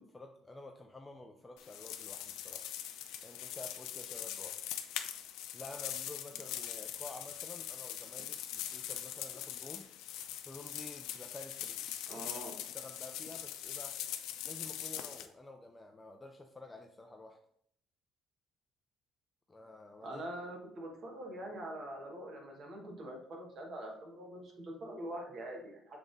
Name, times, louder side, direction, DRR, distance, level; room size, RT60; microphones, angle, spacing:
voice 1, 0.1-2.7 3.2-4.6 5.5-9.9 10.4-12.3 12.7-14.0 14.4-17.4 19.5-20.2, left 2 dB, 10° left, 3 dB, 0.4 m, -50 dB
sound 1, 1.6-15.3, left 11 dB, 90° left, 0.6 m, -42 dB
voice 2, 12.1-12.6 20.0-26.0, right 1 dB, 45° right, 1 dB, 1.4 m, -44 dB
7.2 x 3.5 x 3.9 m, 0.68 s
cardioid pair, 160°, 0 cm